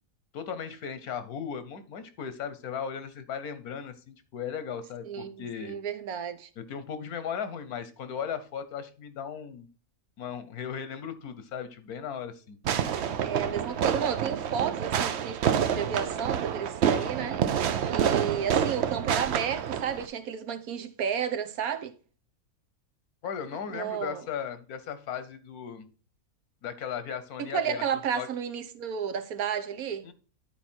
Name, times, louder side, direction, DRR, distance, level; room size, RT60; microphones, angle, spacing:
voice 1, 0.3-5.8 6.6-9.7 10.2-12.6 16.9-17.4 23.2-25.9 26.6-27.8 28.1-28.3 30.0-30.1, left 7 dB, 85° left, 1.5 m, -37 dB
voice 2, 5.0-6.5 13.2-21.9 23.7-24.2 27.4-30.1, right 7 dB, 75° right, 1.3 m, -32 dB
Fireworks, 12.6-20.1, right 8 dB, 60° right, 0.8 m, -28 dB
11.0 x 4.6 x 4.4 m
omnidirectional pair, 1.5 m